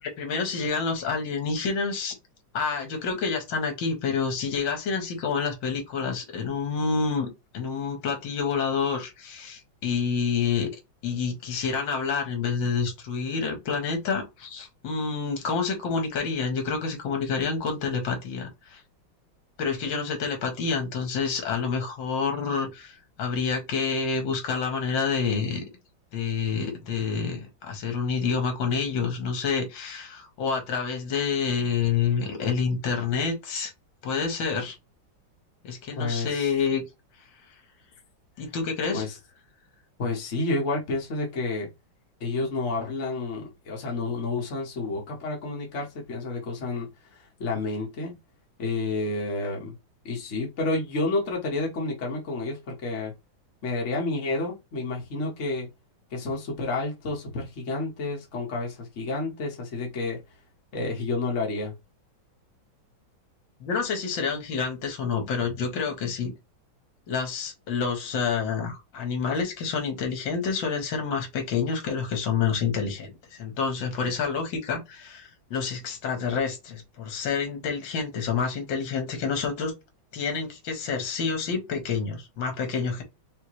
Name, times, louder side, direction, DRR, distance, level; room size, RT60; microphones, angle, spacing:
voice 1, 0.0-2.2 2.5-7.3 7.5-10.7 11.0-18.8 19.6-25.6 26.1-33.7 34.0-34.8 35.6-36.8 38.4-39.1 63.6-66.3 67.1-79.7 80.1-83.0, left 5 dB, 70° left, 2.0 m, -28 dB
voice 2, 36.0-36.5 38.9-39.2 40.0-41.7 42.2-48.2 48.6-49.8 50.0-53.1 53.6-55.7 56.1-60.2 60.7-61.7, left 3 dB, 40° left, 1.5 m, -30 dB
5.5 x 2.7 x 3.1 m
omnidirectional pair, 2.2 m